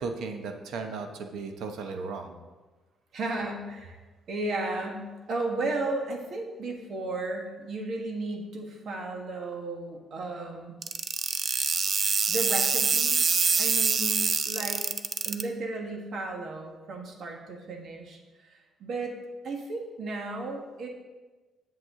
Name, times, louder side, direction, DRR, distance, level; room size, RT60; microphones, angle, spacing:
voice 1, 0.0-2.3, right 4 dB, 85° right, 5 dB, 0.9 m, -35 dB
voice 2, 3.1-4.0 4.3-10.8 12.3-13.2 13.6-14.9 15.2-19.2 19.4-20.9, right 2 dB, 65° right, 2 dB, 1.5 m, -34 dB
sound 1, 10.8-15.4, right 5 dB, 45° right, 0.5 m, -25 dB
7.9 x 7.4 x 3.7 m, 1.2 s
cardioid pair, 90°, 0 cm